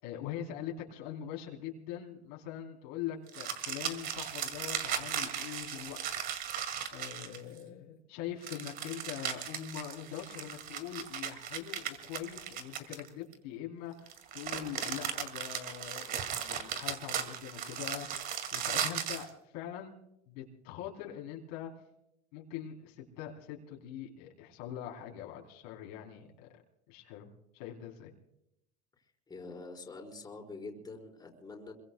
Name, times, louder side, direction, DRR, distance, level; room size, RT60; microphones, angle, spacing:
voice 1, 0.0-6.0 6.9-19.3 19.5-20.0 20.3-21.7 22.3-26.5 26.9-27.3 27.5-28.1, left 10 dB, 75° left, 0 dB, 3.6 m, -43 dB
sound 1, 3.3-7.6 8.4-13.3 14.1-19.3, right 8 dB, 45° right, 2.3 m, -37 dB
voice 2, 29.3-31.8, left 3 dB, 20° left, 0 dB, 4.8 m, -45 dB
27.5 x 23.0 x 2.3 m, 0.80 s
supercardioid pair, 125°, 21 cm